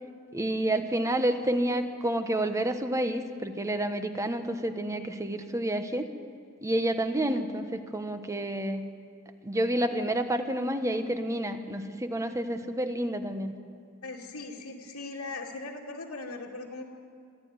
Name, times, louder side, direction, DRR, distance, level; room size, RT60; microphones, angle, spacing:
voice 1, 0.3-6.1 6.6-8.8 9.4-13.5, right 1 dB, 15° right, 7 dB, 1.2 m, -29 dB
voice 2, 14.0-16.8, left 3 dB, 85° left, -4 dB, 2.4 m, -39 dB
26.0 x 12.5 x 9.6 m, 2.3 s
head